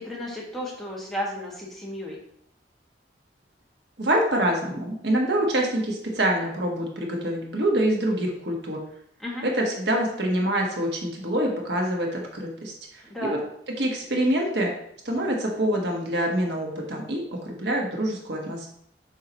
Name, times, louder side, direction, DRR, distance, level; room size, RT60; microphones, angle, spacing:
voice 1, 0.0-2.2 9.2-9.4 13.1-13.4, left 1 dB, ahead, -4 dB, 1.7 m, -33 dB
voice 2, 4.0-8.8 9.4-13.4 13.8-14.7 15.0-18.7, right 1 dB, 70° right, 0 dB, 1.4 m, -26 dB
7.3 x 5.7 x 3.0 m, 0.70 s
head